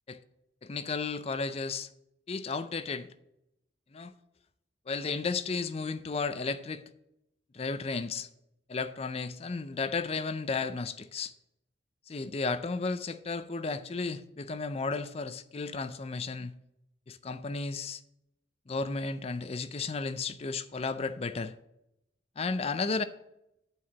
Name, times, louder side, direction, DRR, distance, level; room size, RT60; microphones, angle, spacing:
voice 1, 0.6-1.9 2.3-3.1 3.9-4.1 4.9-6.8 7.5-8.3 8.7-11.3 12.1-16.5 17.1-18.0 18.7-21.5 22.4-23.0, left 4 dB, 30° left, 0.4 m, -33 dB
8.6 x 4.7 x 7.0 m
head